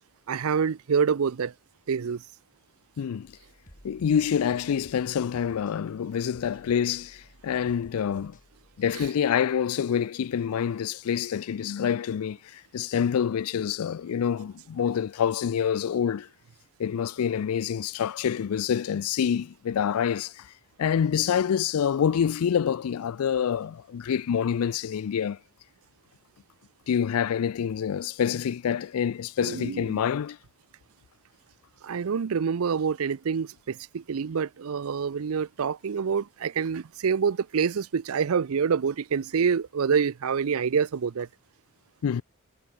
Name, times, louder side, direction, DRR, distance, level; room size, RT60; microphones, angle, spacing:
voice 1, 0.3-1.5 1.9-2.2 8.9-9.1 29.4-30.0 31.8-41.3, right 6 dB, 75° right, 0.5 m, -27 dB
voice 2, 3.0-3.3 3.8-8.4 8.8-16.3 16.8-20.5 20.8-25.4 26.9-30.4 42.0-42.2, left 8 dB, 85° left, 0.4 m, -27 dB
sound 1, 3.2-9.1, equal, 40° left, 6.6 m, -55 dB
head